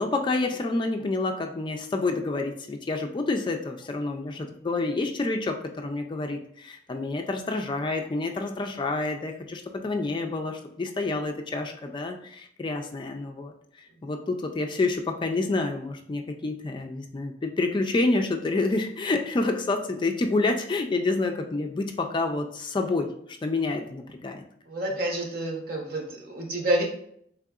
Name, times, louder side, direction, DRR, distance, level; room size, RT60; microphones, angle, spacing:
voice 1, 0.0-13.5 14.0-23.1 23.4-24.4, left 3 dB, 25° left, 4 dB, 0.3 m, -28 dB
voice 2, 24.7-26.8, right 1 dB, 55° right, 0 dB, 0.9 m, -28 dB
3.7 x 3.4 x 2.4 m, 0.68 s
head